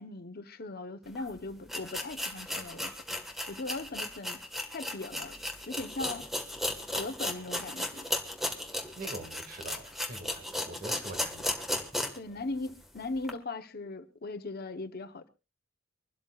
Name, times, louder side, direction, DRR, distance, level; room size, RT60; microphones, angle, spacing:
voice 1, 0.0-2.9 3.5-4.4 4.7-5.4 5.7-6.3 6.9-8.0 12.1-15.3, left 2 dB, 50° left, 0.9 m, -39 dB
sound 1, 1.1-1.2 1.7-12.3 12.7-12.8 13.2-13.3, left 1 dB, ahead, 1.5 m, -35 dB
voice 2, 9.0-11.5, right 2 dB, 45° right, 2.0 m, -44 dB
25.0 x 12.5 x 2.4 m
head